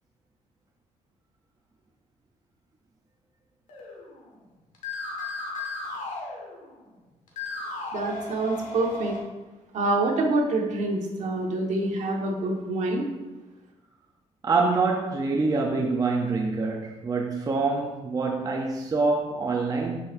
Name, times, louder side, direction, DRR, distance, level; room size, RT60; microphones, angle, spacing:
sound 1, 3.7-4.4 4.7-6.9 7.3-9.2, left 3 dB, 80° left, 1.7 m, -35 dB
voice 1, 7.9-9.1 9.7-13.0, right 2 dB, 65° right, 0 dB, 1.5 m, -26 dB
voice 2, 14.4-20.0, right 3 dB, 30° right, 0 dB, 0.7 m, -25 dB
8.0 x 5.9 x 2.6 m, 1.1 s
cardioid pair, 115°, 13 cm